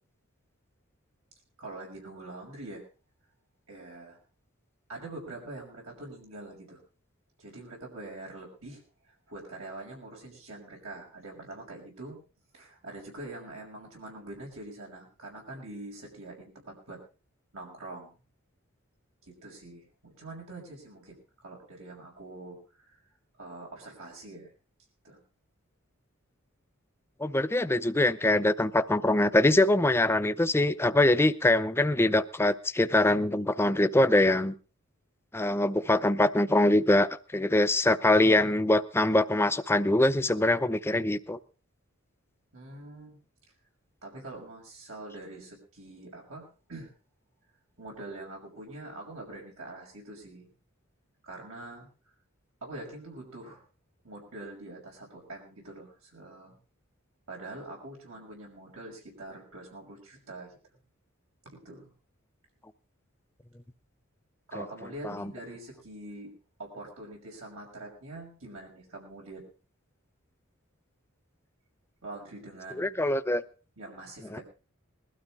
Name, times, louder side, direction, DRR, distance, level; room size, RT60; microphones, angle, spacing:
voice 1, 1.6-2.8 3.7-4.2 4.9-6.8 7.4-8.8 9.3-12.2 12.5-17.0 17.5-18.1 19.3-23.0 23.4-24.5 25.0-25.2 42.5-43.2 44.0-46.9 47.8-50.5 51.2-51.9 52.6-53.6 54.0-56.5 57.3-60.5 61.4-61.9 64.5-66.3 66.6-69.5 72.0-73.0 73.8-74.4, right 2 dB, 85° right, 0 dB, 6.1 m, -44 dB
voice 2, 27.2-34.5 35.3-41.4 64.6-64.7 65.0-65.3 72.8-73.4 74.3-74.4, left 1 dB, 10° left, 11 dB, 0.6 m, -24 dB
21.0 x 12.5 x 3.6 m, 0.35 s
head